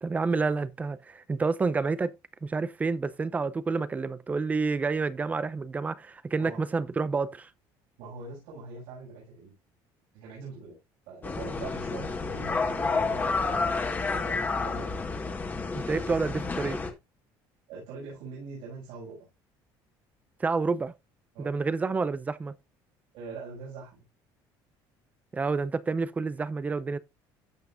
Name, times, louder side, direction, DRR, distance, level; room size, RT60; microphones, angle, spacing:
voice 1, 0.0-2.1 2.4-7.5 15.7-16.8 20.4-20.9 21.4-22.5 25.3-27.0, right 4 dB, 15° right, 0.6 m, -29 dB
voice 2, 8.0-9.5 10.1-10.8 11.1-14.9 17.7-19.3 21.3-21.5 23.1-24.0, right 4 dB, 85° right, 6.5 m, -43 dB
sound 1, 11.2-16.9, left 4 dB, 20° left, 1.7 m, -30 dB
15.5 x 5.8 x 2.5 m
cardioid pair, 140°, 9 cm